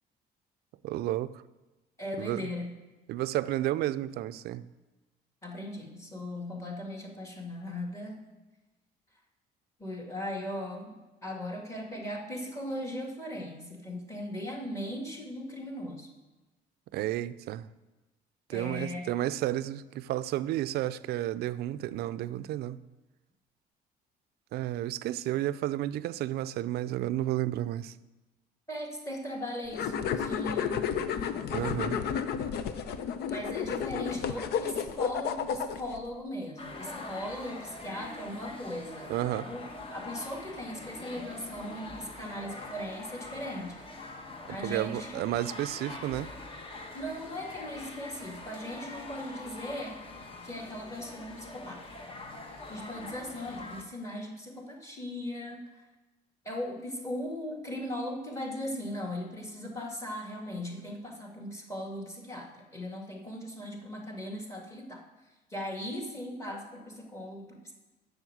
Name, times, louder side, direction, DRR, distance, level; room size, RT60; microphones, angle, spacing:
voice 1, 0.8-1.4 2.2-2.4 3.1-4.7 16.9-17.7 18.5-22.8 24.5-27.9 31.5-32.0 39.1-39.5 44.6-46.3, right 14 dB, 70° right, 0.4 m, -32 dB
voice 2, 2.0-2.7 5.4-8.2 9.8-11.0 11.2-16.1 18.5-19.1 28.7-30.9 33.3-39.1 39.5-39.6 39.9-43.7 44.5-45.5 46.9-50.0 50.4-51.8 52.7-55.6 56.5-65.0 65.5-67.7, left 1 dB, 15° left, 2.0 m, -38 dB
sound 1, 29.7-36.0, left 7 dB, 70° left, 0.6 m, -32 dB
sound 2, 36.6-53.8, left 2 dB, 30° left, 1.1 m, -44 dB
7.2 x 6.5 x 7.8 m
cardioid pair, 110°, 17 cm